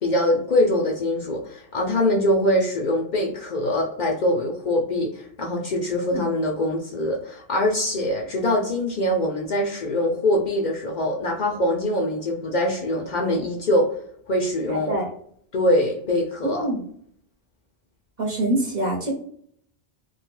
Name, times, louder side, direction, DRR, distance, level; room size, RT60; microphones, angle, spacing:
voice 1, 0.0-13.9 14.3-15.0 15.5-16.7, left 1 dB, 55° left, -1 dB, 0.6 m, -23 dB
voice 2, 14.7-15.1 16.4-16.8 18.2-19.1, right 1 dB, 45° right, -1 dB, 0.8 m, -25 dB
2.3 x 2.3 x 2.9 m, 0.64 s
omnidirectional pair, 1.1 m